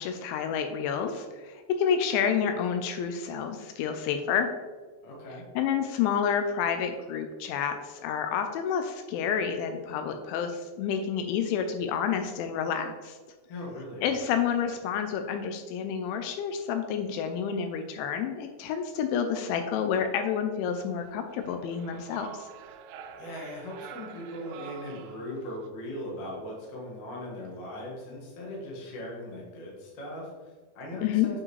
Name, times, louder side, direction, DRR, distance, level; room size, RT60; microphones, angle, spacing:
voice 1, 0.0-4.5 5.6-13.2 14.0-22.5 31.0-31.3, left 7 dB, 85° left, 7 dB, 2.9 m, -29 dB
voice 2, 5.0-5.4 13.5-14.1 23.2-31.4, left 1 dB, 55° left, -3 dB, 2.2 m, -39 dB
sound 1, 20.7-25.7, right 8 dB, 90° right, 2.3 m, -47 dB
8.4 x 4.9 x 3.2 m, 1.4 s
omnidirectional pair, 5.3 m